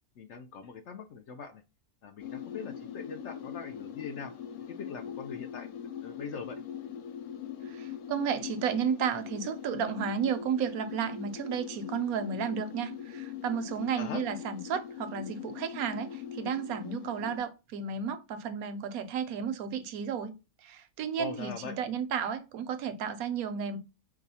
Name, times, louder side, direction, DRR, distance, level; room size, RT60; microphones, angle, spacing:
voice 1, 0.2-1.6 2.0-4.3 4.7-5.7 6.0-6.6 14.0-14.2 21.2-21.8, left 5 dB, 65° left, 0.7 m, -41 dB
sound 1, 2.2-17.4, left 8 dB, 90° left, 1.1 m, -42 dB
voice 2, 7.7-20.3 20.6-23.8, right 7 dB, 80° right, 1.1 m, -33 dB
4.7 x 2.3 x 2.7 m
omnidirectional pair, 1.5 m